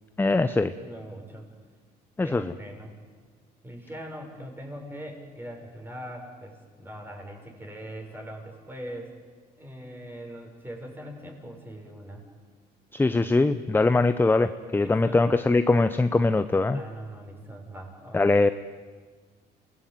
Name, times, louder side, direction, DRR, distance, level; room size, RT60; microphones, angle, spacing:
voice 1, 0.2-0.7 2.2-2.5 12.9-16.8 18.1-18.5, left 3 dB, 10° left, 11 dB, 0.7 m, -22 dB
voice 2, 0.8-1.5 2.2-2.9 3.6-9.1 9.6-12.2 14.8-15.2 16.7-18.2, equal, 10° right, 2 dB, 6.4 m, -41 dB
28.5 x 19.0 x 9.4 m, 1.5 s
cardioid pair, 110°, 17 cm